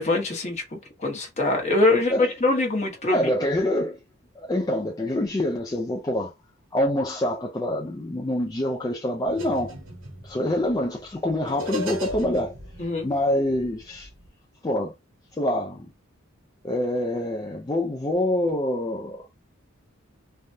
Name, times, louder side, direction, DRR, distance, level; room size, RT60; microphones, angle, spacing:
voice 1, 0.0-3.3 12.8-13.1, left 2 dB, 35° left, 1.0 m, -24 dB
voice 2, 3.1-4.0 4.4-6.3 6.7-9.7 10.2-14.1 14.6-14.9 15.3-15.9 16.6-19.3, left 1 dB, 20° left, 0.3 m, -26 dB
sound 1, 9.2-14.3, left 1 dB, 60° right, 0.9 m, -37 dB
3.3 x 2.2 x 2.6 m
head